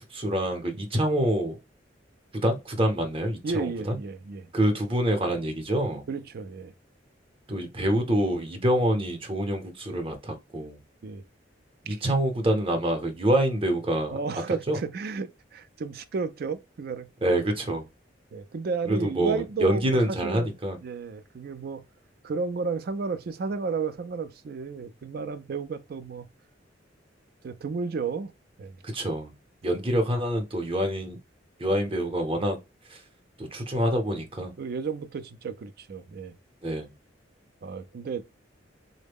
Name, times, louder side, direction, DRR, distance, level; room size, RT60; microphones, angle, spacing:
voice 1, 0.0-1.6 2.3-4.0 4.5-6.0 7.5-10.8 11.8-14.2 14.7-14.8 17.2-17.9 18.9-20.8 28.8-29.3 29.6-31.2 31.6-32.6 32.9-33.0 33.4-34.5 36.6-36.9, right 1 dB, 30° right, 0.7 m, -26 dB
voice 2, 3.4-4.5 6.1-6.7 11.0-11.2 14.1-17.1 18.3-20.5 20.8-21.8 22.2-26.3 27.4-28.3 28.6-28.8 34.6-36.3 37.6-38.2, right 4 dB, 55° right, 0.4 m, -32 dB
3.7 x 2.1 x 3.5 m
head